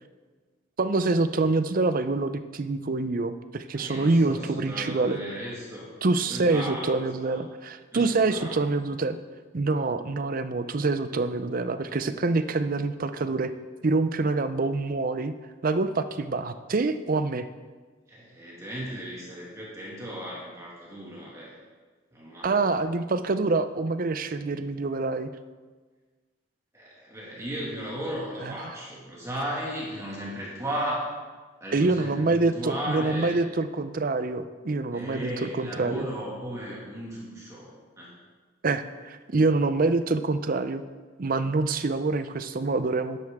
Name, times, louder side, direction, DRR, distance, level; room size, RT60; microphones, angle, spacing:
voice 1, 0.8-5.2 6.0-9.2 9.5-13.5 13.8-15.3 15.6-17.4 22.4-25.3 28.4-28.6 31.7-36.1 38.6-40.8 41.2-43.2, right 3 dB, 45° right, 11 dB, 0.5 m, -26 dB
voice 2, 3.7-5.9 6.3-7.4 7.9-8.6 18.1-21.5 22.1-22.6 26.7-31.1 31.6-33.3 34.9-38.1, equal, 15° right, -5 dB, 2.1 m, -36 dB
11.0 x 11.0 x 3.6 m, 1.4 s
head